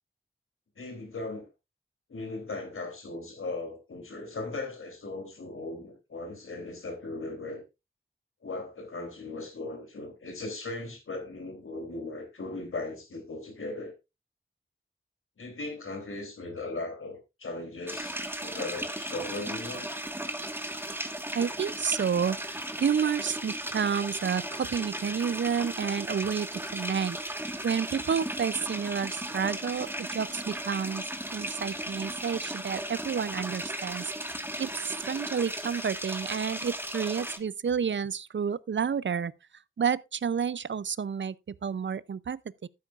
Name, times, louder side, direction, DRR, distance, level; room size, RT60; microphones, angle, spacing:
voice 1, 0.8-1.5 2.1-7.6 8.4-13.9 15.4-19.9, left 2 dB, 85° left, 3.2 m, -38 dB
sound 1, 17.9-37.4, right 1 dB, 10° right, 1.5 m, -36 dB
voice 2, 21.3-31.0 31.3-34.7 35.0-39.3 39.8-42.7, right 7 dB, 65° right, 0.5 m, -30 dB
12.5 x 10.0 x 2.4 m
wide cardioid pair, 55°, 21 cm